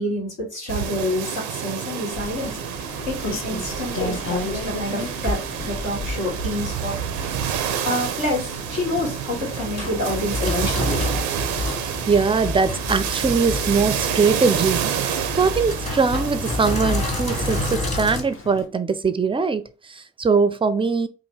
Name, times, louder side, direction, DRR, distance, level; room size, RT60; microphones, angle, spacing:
voice 1, 0.0-2.5 3.1-7.0 7.6-11.3, left 1 dB, 75° left, 1.9 m, -28 dB
sound 1, 0.7-17.8, right 9 dB, 80° right, 0.5 m, -29 dB
Rain, 2.1-18.7, left 3 dB, 40° left, 0.8 m, -36 dB
Sink (filling or washing), 9.4-18.2, left 2 dB, 20° left, 1.5 m, -29 dB
voice 2, 11.8-14.9 15.3-21.1, right 5 dB, 15° right, 0.4 m, -21 dB
2.8 x 2.6 x 4.3 m
hypercardioid pair, 45°, 32 cm